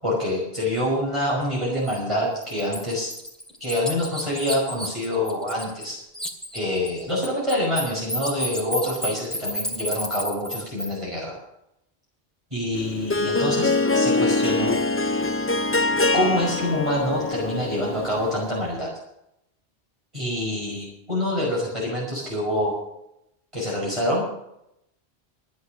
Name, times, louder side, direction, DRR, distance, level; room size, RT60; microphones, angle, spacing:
voice 1, 0.0-3.1 3.6-6.0 6.5-11.4 12.5-14.7 16.1-18.9 20.1-22.8 23.5-24.2, left 1 dB, 30° right, -5 dB, 5.4 m, -26 dB
Bird, 1.9-2.0 2.4-5.9 6.1-10.9, equal, ahead, 2.4 m, -31 dB
Harp, 12.7-18.5, left 3 dB, 20° left, 0.3 m, -24 dB
14.5 x 11.0 x 6.4 m, 0.80 s
omnidirectional pair, 1.1 m